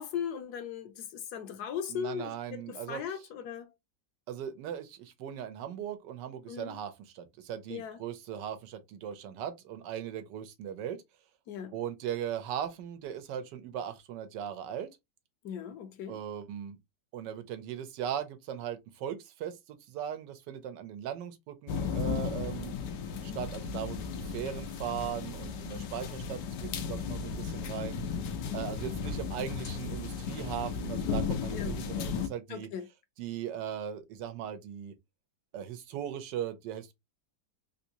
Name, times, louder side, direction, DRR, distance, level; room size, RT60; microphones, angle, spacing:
voice 1, 0.0-3.7 6.5-6.7 7.7-8.0 11.5-11.7 15.4-16.2 31.5-31.8 32.5-32.9, left 8 dB, 70° left, 1.1 m, -38 dB
voice 2, 1.9-3.2 4.3-11.0 11.7-14.9 16.1-16.8 17.1-22.7 23.2-28.0 28.5-32.7 33.2-34.9 35.5-36.9, right 9 dB, 85° right, 1.3 m, -38 dB
sound 1, 21.7-32.3, left 6 dB, 90° left, 1.3 m, -35 dB
3.6 x 2.6 x 2.8 m
omnidirectional pair, 1.8 m